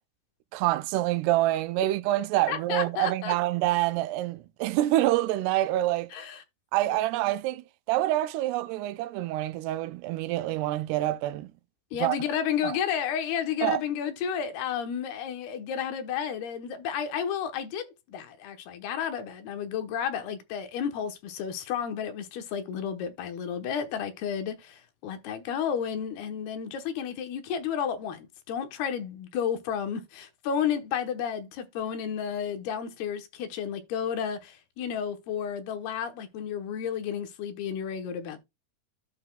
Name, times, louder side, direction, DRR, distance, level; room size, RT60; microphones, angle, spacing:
voice 1, 0.5-6.1 6.7-11.5 12.0-12.2 12.6-12.8 13.6-13.8, right 15 dB, 85° right, 2.6 m, -26 dB
voice 2, 2.5-3.4 6.1-6.4 6.9-7.0 11.9-38.4, left 8 dB, 75° left, 3.1 m, -32 dB
12.0 x 5.9 x 2.3 m
omnidirectional pair, 4.7 m